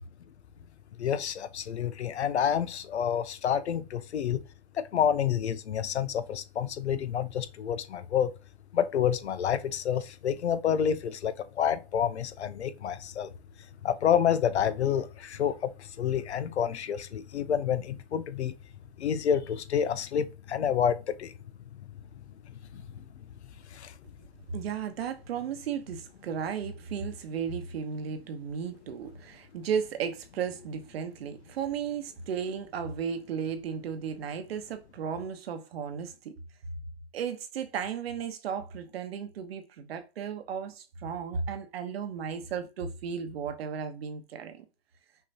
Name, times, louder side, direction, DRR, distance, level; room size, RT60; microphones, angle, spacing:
voice 1, 1.0-4.4 4.8-8.3 8.7-13.3 13.8-15.7 16.0-18.5 19.0-21.3 22.7-22.8 23.7-23.9, left 8 dB, 85° left, 0.7 m, -28 dB
voice 2, 24.5-36.3 37.1-44.7, right 7 dB, 65° right, 1.1 m, -35 dB
5.7 x 2.9 x 2.8 m
hypercardioid pair, 130°, 32 cm